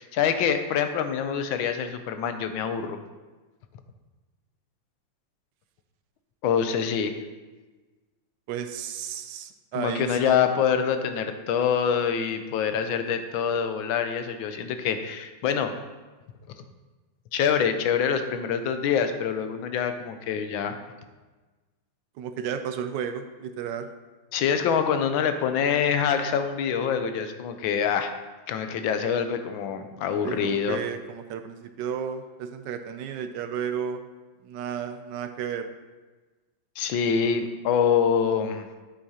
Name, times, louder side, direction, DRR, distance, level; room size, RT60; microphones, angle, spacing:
voice 1, 0.0-3.0 6.4-7.2 9.7-15.7 17.3-20.7 24.3-28.1 28.5-30.8 36.8-38.7, left 7 dB, 85° left, 8 dB, 1.4 m, -25 dB
voice 2, 8.5-10.3 22.2-23.9 30.2-34.0 34.4-35.7, right 8 dB, 75° right, 8 dB, 1.1 m, -33 dB
8.5 x 7.7 x 2.8 m, 1.3 s
omnidirectional pair, 2.1 m